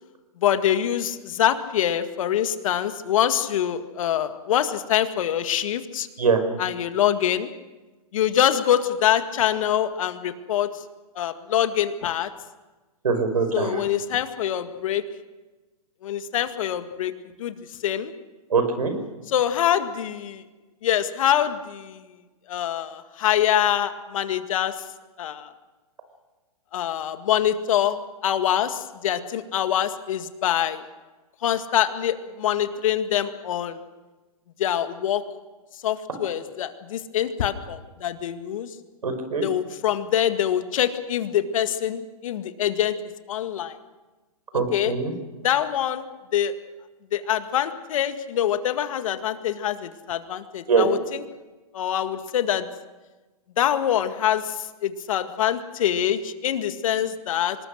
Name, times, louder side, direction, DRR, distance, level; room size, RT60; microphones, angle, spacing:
voice 1, 0.4-6.1 6.6-7.5 8.1-10.8 11.2-12.3 13.5-15.0 16.0-17.1 17.4-17.6 17.8-18.1 19.3-20.4 20.8-22.1 22.5-24.8 25.2-25.5 26.7-30.9 31.4-33.8 34.6-35.3 35.8-38.8 39.4-43.0 43.3-43.8 44.7-44.9 45.4-46.0 46.3-46.5 47.1-51.2 51.7-52.7 53.6-57.6, left 10 dB, 60° left, 9 dB, 2.0 m, -24 dB
voice 2, 13.0-13.8 18.5-18.9 39.0-39.4 44.5-45.1 50.7-50.9, right 5 dB, 85° right, 8 dB, 5.3 m, -22 dB
25.5 x 20.0 x 6.5 m, 1.2 s
hypercardioid pair, 135°, 19 cm